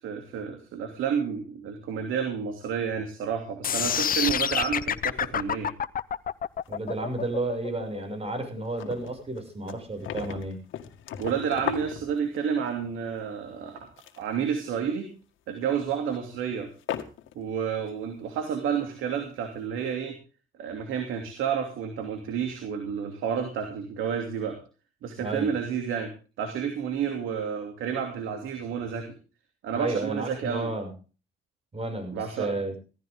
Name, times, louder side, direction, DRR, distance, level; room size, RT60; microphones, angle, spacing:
voice 1, 0.0-5.7 11.2-13.9 14.2-15.1 15.5-16.7 17.3-20.1 20.6-24.6 25.0-26.1 26.4-29.1 29.6-30.7 32.1-32.6, right 7 dB, 85° right, 5 dB, 2.9 m, -30 dB
sound 1, 3.6-9.7, left 8 dB, 45° left, 0.8 m, -28 dB
sound 2, 6.7-7.4 7.7-7.8 8.1-8.2 8.5-12.7 13.7-14.4 14.7-15.0 16.1-16.2 16.8-17.4 17.9-18.0, left 10 dB, 80° left, 2.0 m, -37 dB
voice 2, 6.7-10.6 25.2-25.5 29.7-30.9 31.7-32.8, right 2 dB, 30° right, 6 dB, 6.4 m, -32 dB
17.0 x 14.5 x 3.7 m, 0.36 s
cardioid pair, 90°, 20 cm